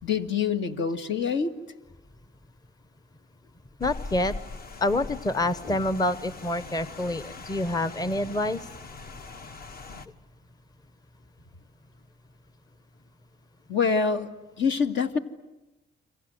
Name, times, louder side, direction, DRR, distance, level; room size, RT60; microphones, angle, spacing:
voice 1, 0.0-1.5 13.7-15.2, left 5 dB, 70° left, 6 dB, 2.0 m, -26 dB
Rain, 3.8-10.1, left 3 dB, 50° left, 1.5 m, -41 dB
voice 2, 3.8-4.3 4.8-8.7, left 1 dB, 20° left, 14 dB, 0.9 m, -27 dB
29.0 x 26.0 x 7.9 m, 1.0 s
cardioid pair, 90°, 20 cm